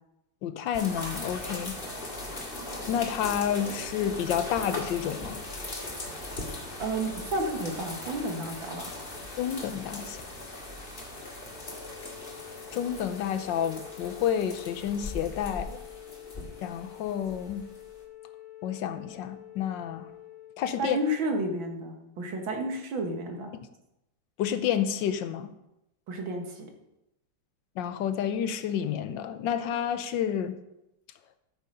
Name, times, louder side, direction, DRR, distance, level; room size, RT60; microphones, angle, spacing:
voice 1, 0.4-1.8 2.9-5.4 9.4-10.2 12.7-15.8 16.6-17.7 18.6-20.1 20.6-21.0 24.4-25.5 27.8-30.6, left 9 dB, 75° left, 1.4 m, -30 dB
sound 1, 0.7-18.0, left 1 dB, 30° left, 2.0 m, -39 dB
voice 2, 6.8-8.9 20.8-23.5 26.1-26.7, right 1 dB, 80° right, 2.3 m, -31 dB
Wind instrument woodwind instrument, 11.4-20.6, left 14 dB, 10° left, 3.6 m, -47 dB
13.0 x 6.5 x 5.6 m
omnidirectional pair, 2.1 m